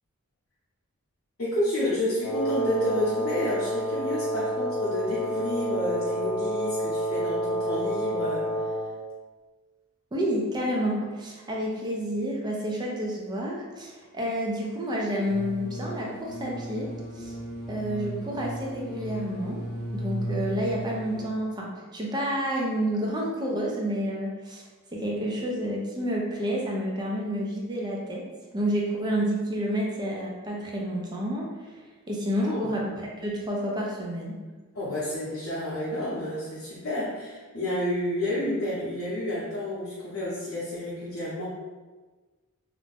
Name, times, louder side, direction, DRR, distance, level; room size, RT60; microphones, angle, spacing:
voice 1, 1.4-8.5 32.4-32.7 34.7-41.5, left 1 dB, 55° left, -11 dB, 0.7 m, -30 dB
Wind instrument woodwind instrument, 2.2-9.0, right 1 dB, 80° left, 0.4 m, -29 dB
voice 2, 10.1-17.3 17.7-19.6 19.9-24.6 24.9-28.2 28.5-31.7 32.1-34.4, equal, 20° right, -3 dB, 0.4 m, -29 dB
sound 1, 15.3-21.3, right 1 dB, 75° right, 0.7 m, -35 dB
2.5 x 2.1 x 3.3 m, 1.3 s
head